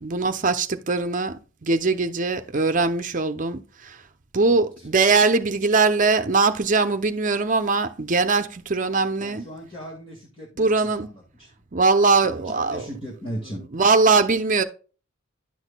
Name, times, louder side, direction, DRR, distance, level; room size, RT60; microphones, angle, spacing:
voice 1, 0.0-4.0 4.3-9.5 10.6-11.1 11.7-12.9 13.7-14.6, right 4 dB, 40° right, 0.7 m, -21 dB
voice 2, 9.2-11.1 11.4-11.5 12.2-13.6, equal, 25° left, 1.8 m, -37 dB
11.0 x 6.3 x 2.2 m
head